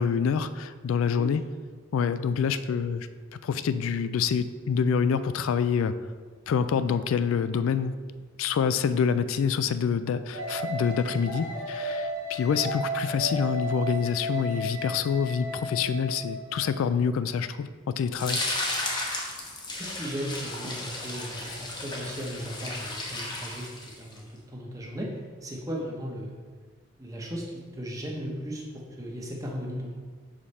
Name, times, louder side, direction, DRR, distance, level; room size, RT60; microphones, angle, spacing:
voice 1, 0.0-1.4 1.9-3.1 3.4-5.9 6.5-7.9 8.4-17.7 18.0-18.4, left 6 dB, 75° left, 12 dB, 0.3 m, -26 dB
voice 2, 1.0-1.4 19.7-23.7 24.0-24.2 24.5-26.3 27.0-29.9, equal, 15° right, -1 dB, 0.9 m, -36 dB
sound 1, 10.3-16.7, right 1 dB, 85° right, 1.4 m, -34 dB
sound 2, 18.1-24.2, left 2 dB, 20° left, 0.8 m, -34 dB
5.6 x 5.1 x 4.2 m, 1.5 s
head